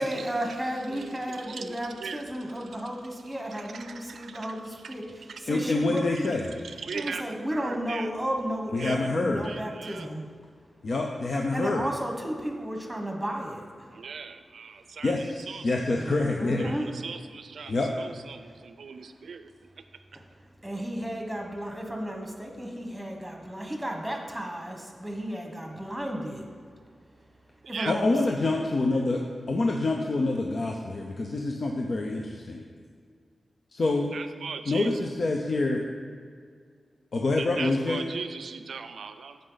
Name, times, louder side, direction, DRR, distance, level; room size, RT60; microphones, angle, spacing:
voice 1, 0.0-6.5 6.9-10.3 11.5-14.0 15.9-16.8 18.4-18.6 18.9-19.1 20.1-26.5 27.7-28.4, equal, 5° right, 2 dB, 1.2 m, -34 dB
voice 2, 0.9-2.3 3.5-4.5 4.8-4.9 5.3-5.4 6.6-8.1 8.8-9.1 9.4-10.1 13.9-15.7 16.6-19.5 27.6-27.9 34.0-34.9 37.4-39.4, right 5 dB, 80° right, 10 dB, 0.5 m, -39 dB
voice 3, 5.5-6.4 8.7-9.5 10.8-11.8 15.0-16.7 17.7-17.9 27.9-32.6 33.7-34.1 34.7-35.8 37.1-38.0, left 2 dB, 50° left, 1 dB, 0.7 m, -26 dB
14.5 x 5.3 x 4.0 m, 2.1 s
wide cardioid pair, 145°, 0 cm